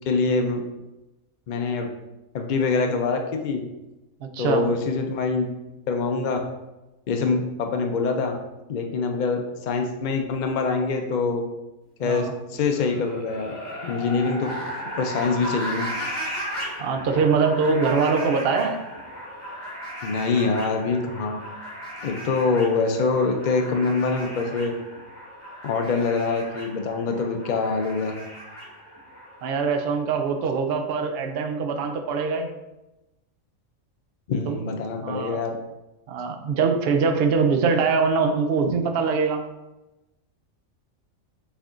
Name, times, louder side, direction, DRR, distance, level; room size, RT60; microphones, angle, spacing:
voice 1, 0.1-0.6 1.5-1.9 2.3-3.6 4.4-5.5 5.9-6.4 7.1-8.3 8.7-11.4 12.0-13.5 13.8-14.5 15.0-15.9 20.0-21.4 22.0-24.7 25.6-28.1 34.3-35.6, left 4 dB, 65° left, 3 dB, 0.4 m, -24 dB
voice 2, 4.2-4.6 12.0-12.3 16.8-18.8 29.4-32.5 34.5-34.7 35.0-35.4 36.1-39.4, right 5 dB, 60° right, 5 dB, 0.7 m, -23 dB
sound 1, 12.5-29.5, equal, 30° left, 1.8 m, -36 dB
5.9 x 3.5 x 2.5 m, 0.99 s
omnidirectional pair, 1.4 m